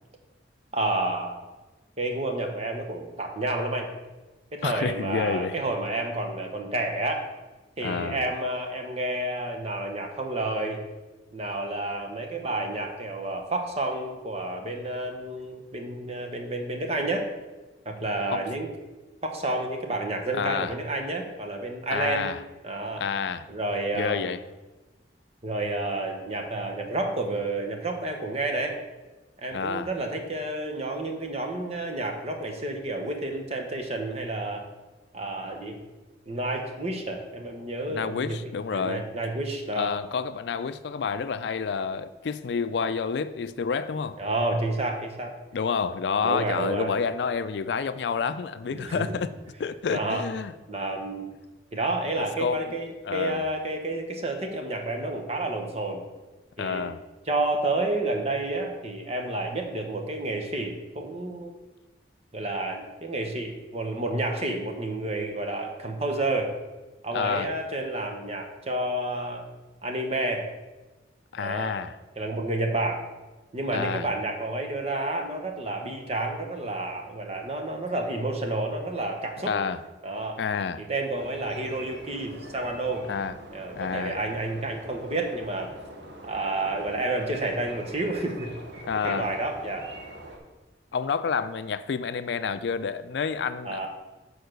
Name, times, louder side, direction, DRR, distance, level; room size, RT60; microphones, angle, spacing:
voice 1, 0.7-1.4 2.0-3.9 4.5-7.3 7.8-10.8 11.3-17.3 17.8-18.7 19.2-22.3 22.6-23.0 23.5-24.3 25.4-28.8 29.4-34.6 35.1-35.8 36.3-38.4 38.7-39.9 44.2-45.3 46.2-47.0 48.7-49.2 49.9-50.2 50.7-51.3 51.7-56.0 56.6-56.8 57.3-61.5 62.3-66.5 67.0-69.4 69.8-70.5 71.4-71.8 72.2-73.0 73.5-79.5 80.0-80.4 80.8-83.1 83.5-85.7 86.2-88.5 89.0-89.9 93.6-93.9, right 2 dB, 35° right, 1.0 m, -30 dB
voice 2, 4.6-5.6 7.8-8.2 18.3-18.4 20.3-20.8 21.9-22.4 23.0-23.5 23.9-24.4 29.5-29.9 37.9-39.0 39.8-44.2 45.5-49.3 49.6-50.5 52.4-52.6 53.1-53.4 56.6-57.0 67.1-67.5 71.3-72.0 73.7-74.1 79.5-79.8 80.4-80.8 83.1-83.4 83.8-84.2 88.8-89.3 90.9-93.9, left 6 dB, 70° left, 0.4 m, -29 dB
sound 1, 81.1-90.4, right 1 dB, 75° right, 1.3 m, -44 dB
6.8 x 4.7 x 6.4 m
head